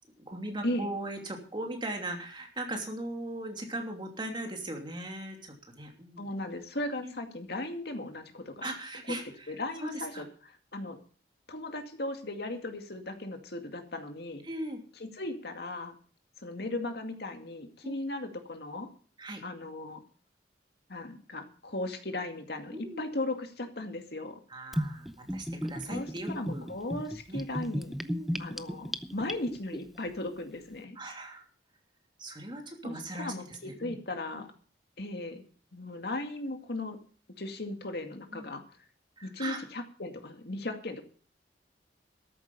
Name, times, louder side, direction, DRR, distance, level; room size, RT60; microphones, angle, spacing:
voice 1, 0.2-6.3 7.0-7.1 8.6-10.2 14.4-14.8 17.8-18.0 19.2-19.4 22.7-23.0 24.5-26.7 27.3-27.4 28.0-28.4 31.0-31.4 32.2-33.9 34.3-34.4 38.3-38.5 39.2-39.6, right 1 dB, 25° right, 3 dB, 2.9 m, -39 dB
voice 2, 6.2-8.7 9.5-11.0 11.5-14.4 15.0-15.9 16.4-18.9 19.4-20.0 20.9-24.4 25.9-27.9 28.4-31.0 32.8-34.5 35.0-35.4 35.7-37.0 37.4-38.6 39.2-41.0, left 2 dB, 60° left, 6 dB, 2.2 m, -37 dB
Gurgling / Bathtub (filling or washing), 24.7-29.8, equal, ahead, 0.7 m, -35 dB
13.5 x 11.5 x 5.4 m, 0.42 s
head